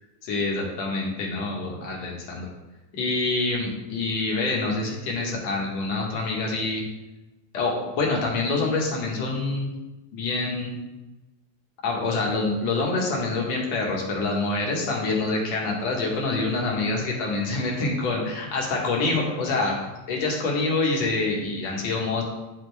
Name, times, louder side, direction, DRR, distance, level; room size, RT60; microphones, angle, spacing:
voice 1, 0.2-2.5 3.0-6.8 7.5-9.7 10.1-10.8 11.8-19.8 20.1-22.2, left 3 dB, 65° left, -2 dB, 2.6 m, -26 dB
9.6 x 6.4 x 3.4 m, 1.1 s
omnidirectional pair, 3.4 m